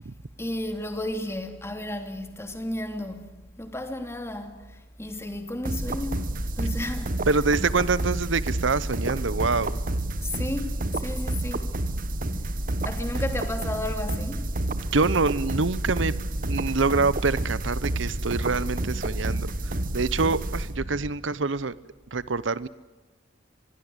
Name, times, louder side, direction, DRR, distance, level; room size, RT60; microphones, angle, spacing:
voice 1, 0.4-3.3 3.6-7.2 10.2-11.7 12.8-14.5, left 1 dB, 15° left, 2.9 m, -33 dB
sound 1, 5.6-21.1, right 1 dB, 45° right, 1.5 m, -29 dB
voice 2, 7.3-9.7 14.7-16.1 16.5-21.7 22.1-22.7, right 4 dB, 70° right, 0.8 m, -25 dB
25.5 x 21.5 x 8.1 m
head